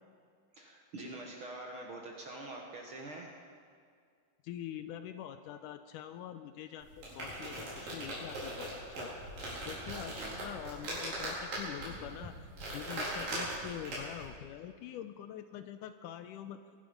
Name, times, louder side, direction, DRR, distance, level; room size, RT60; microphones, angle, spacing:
voice 1, 0.5-3.4 9.8-10.4, right 2 dB, 55° right, 0 dB, 1.6 m, -45 dB
voice 2, 4.4-8.7 9.0-9.1 9.7-16.6, left 10 dB, 80° left, 10 dB, 2.0 m, -45 dB
sound 1, 6.8-14.3, right 1 dB, 80° right, 5.9 m, -40 dB
23.5 x 11.5 x 5.2 m, 2.1 s
omnidirectional pair, 3.9 m